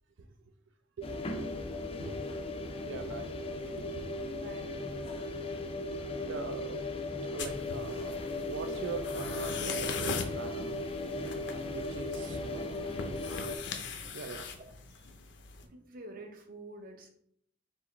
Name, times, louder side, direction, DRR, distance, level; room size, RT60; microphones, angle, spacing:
sound 1, 1.0-13.6, left 2 dB, 30° left, 0.4 m, -37 dB
voice 1, 2.6-3.3 3.7-4.0 6.1-6.9 7.3-10.9 11.7-13.2 14.1-14.5, right 5 dB, 85° right, 9 dB, 0.4 m, -42 dB
voice 2, 4.4-4.7 12.2-13.2 15.0-15.1 15.7-17.1, right 2 dB, 50° right, 3 dB, 0.7 m, -48 dB
sound 2, 7.4-15.7, left 5 dB, 75° left, 0.6 m, -41 dB
4.6 x 3.2 x 3.0 m, 0.69 s
head